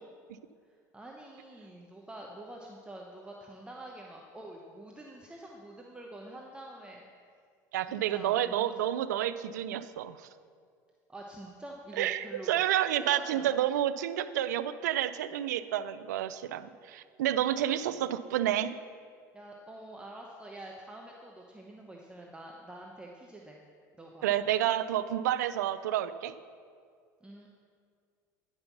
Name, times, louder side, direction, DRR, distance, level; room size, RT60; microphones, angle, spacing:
voice 1, 0.9-7.0 7.9-8.7 11.1-12.6 12.9-13.6 19.3-23.6 24.0-24.2 27.2-27.5, right 1 dB, 10° right, -1 dB, 0.9 m, -46 dB
voice 2, 7.7-10.3 11.9-18.7 24.2-26.3, right 12 dB, 90° right, 14 dB, 0.4 m, -30 dB
9.5 x 5.5 x 5.9 m, 2.1 s
hypercardioid pair, 85°, 9 cm